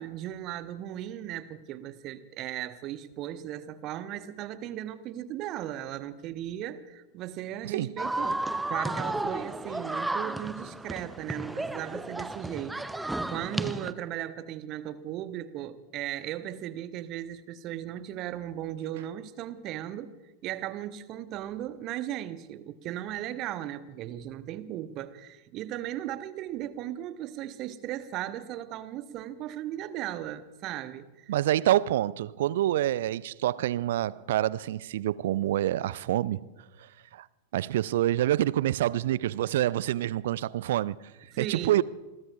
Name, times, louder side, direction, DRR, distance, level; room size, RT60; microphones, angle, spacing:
voice 1, 0.0-20.1 20.4-31.3 41.3-41.8, right 12 dB, 35° right, 1.0 m, -37 dB
sound 1, 8.0-13.9, right 2 dB, 5° right, 0.6 m, -33 dB
voice 2, 31.3-36.4 37.1-37.2 37.5-40.9 41.4-41.8, right 13 dB, 55° right, 0.4 m, -27 dB
27.0 x 21.5 x 2.4 m
figure-of-eight pair, 90°, 0 cm